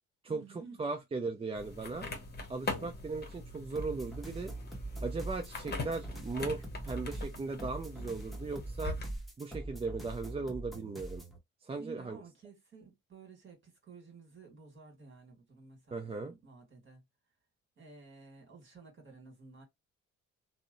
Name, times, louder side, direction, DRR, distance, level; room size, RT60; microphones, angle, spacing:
voice 1, 0.3-0.8 11.8-17.0 17.8-19.6, right 4 dB, 40° right, 1.7 m, -53 dB
voice 2, 0.8-2.1 2.5-4.5 5.0-9.0 9.4-11.2 11.6-12.2 15.9-16.3, right 3 dB, 20° right, 0.4 m, -37 dB
sound 1, 1.6-9.1, left 3 dB, 35° left, 0.9 m, -42 dB
sound 2, 3.7-11.4, right 1 dB, ahead, 0.9 m, -42 dB
2.7 x 2.0 x 2.5 m
cardioid pair, 90°, 30 cm